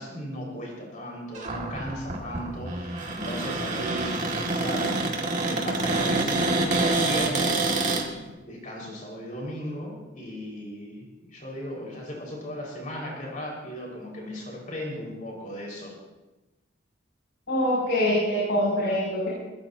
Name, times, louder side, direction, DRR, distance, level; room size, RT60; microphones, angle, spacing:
voice 1, 0.0-15.9, equal, 45° left, -3 dB, 5.6 m, -36 dB
Cupboard open or close, 1.3-8.0, right 2 dB, 40° right, 2.5 m, -26 dB
voice 2, 17.5-19.3, left 1 dB, 70° left, -6 dB, 7.3 m, -24 dB
23.0 x 21.0 x 3.0 m, 1.1 s
head